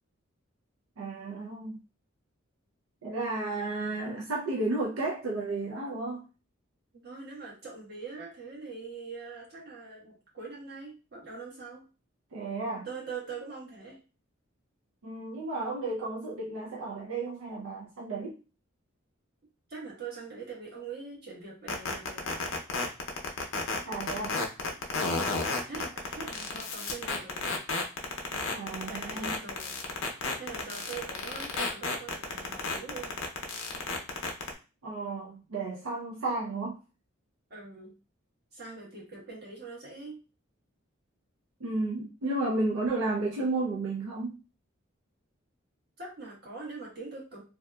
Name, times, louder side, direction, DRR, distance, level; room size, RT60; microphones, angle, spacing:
voice 1, 1.0-1.8 3.0-6.2 12.3-12.9 15.0-18.4 23.8-24.4 28.5-29.3 34.8-36.8 41.6-44.4, right 2 dB, 85° right, -3 dB, 0.5 m, -33 dB
voice 2, 6.9-11.9 12.8-14.0 19.7-22.4 25.0-27.5 28.7-29.8 30.4-33.1 37.5-37.9 38.5-40.2 46.0-47.4, right 4 dB, 50° right, -4 dB, 1.2 m, -43 dB
sound 1, 21.7-34.5, left 4 dB, 75° left, 0.6 m, -31 dB
2.7 x 2.3 x 2.2 m, 0.33 s
head